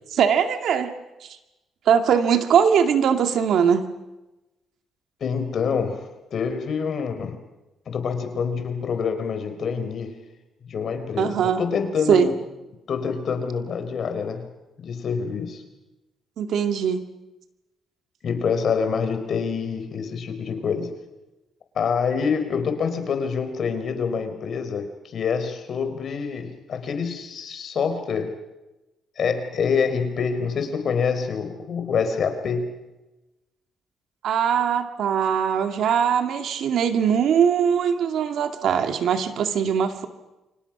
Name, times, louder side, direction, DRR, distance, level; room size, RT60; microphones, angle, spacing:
voice 1, 0.1-0.9 1.2-1.3 1.9-3.9 11.2-11.6 12.1-12.3 16.4-17.0 34.2-40.1, right 7 dB, 70° right, 7 dB, 2.2 m, -21 dB
voice 2, 5.2-7.4 7.9-10.2 10.7-12.3 12.9-14.5 14.8-15.6 18.2-20.9 21.7-28.3 29.2-32.7, left 6 dB, 55° left, 7 dB, 4.2 m, -26 dB
29.5 x 25.0 x 6.1 m, 1.0 s
cardioid pair, 90°, 0 cm